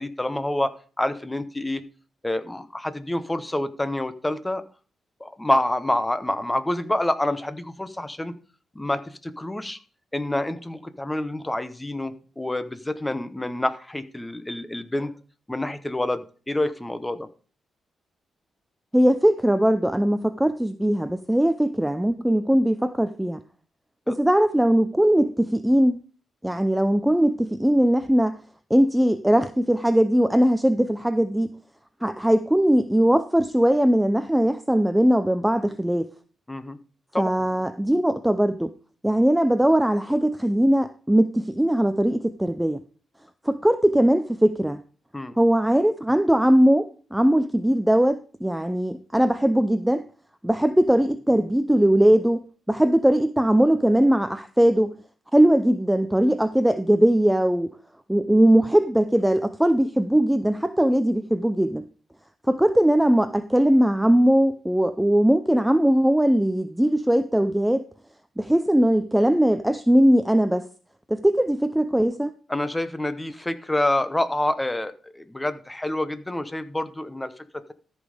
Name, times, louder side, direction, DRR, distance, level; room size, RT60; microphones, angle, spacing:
voice 1, 0.0-1.9 2.2-4.6 5.2-8.3 8.7-9.8 10.1-15.2 15.5-17.3 24.1-24.2 36.5-36.8 37.1-37.3 45.1-45.3 72.5-77.7, left 1 dB, 10° left, 0.9 m, -27 dB
voice 2, 18.9-23.4 24.1-26.0 26.4-28.4 28.7-31.5 32.0-36.1 37.2-38.7 39.0-42.8 43.4-44.8 45.4-50.0 50.4-54.9 55.3-57.7 58.1-61.9 62.5-67.8 68.4-70.7 71.1-72.3, right 1 dB, 5° right, 0.5 m, -20 dB
14.0 x 5.4 x 4.9 m
cardioid pair, 110°, 0 cm